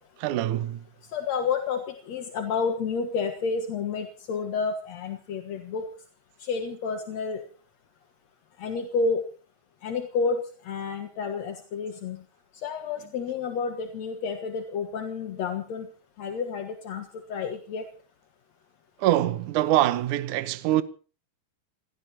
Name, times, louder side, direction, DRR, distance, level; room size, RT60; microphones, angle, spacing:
voice 1, 0.2-0.8 19.0-20.8, right 14 dB, 75° right, 1.9 m, -24 dB
voice 2, 1.1-1.8 2.1-5.9 6.5-7.4 8.6-9.2 9.8-12.2 12.6-15.9 16.2-17.0 17.3-17.9, left 5 dB, 55° left, 2.0 m, -30 dB
28.0 x 17.0 x 2.9 m
omnidirectional pair, 4.8 m